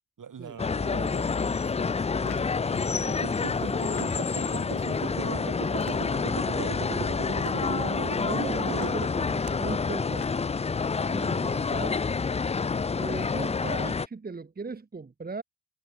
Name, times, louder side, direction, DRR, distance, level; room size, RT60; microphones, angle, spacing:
voice 1, 0.2-3.1 3.4-4.4 5.1-5.5 6.3-6.9 11.5-11.7, right 7 dB, 50° right, 3.5 m, -44 dB
sound 1, 0.6-14.1, left 5 dB, 15° left, 0.5 m, -28 dB
sound 2, 2.2-2.6 3.7-4.4 5.7-6.3 7.3-7.8 8.7-9.0 9.9-10.6, left 16 dB, 70° left, 1.0 m, -46 dB
sound 3, 3.1-9.0 9.5-9.6, right 21 dB, 85° right, 1.6 m, -38 dB
voice 2, 7.7-10.4 11.0-12.0 13.0-15.4, right 4 dB, 20° right, 1.3 m, -38 dB
supercardioid pair, 55°, 41 cm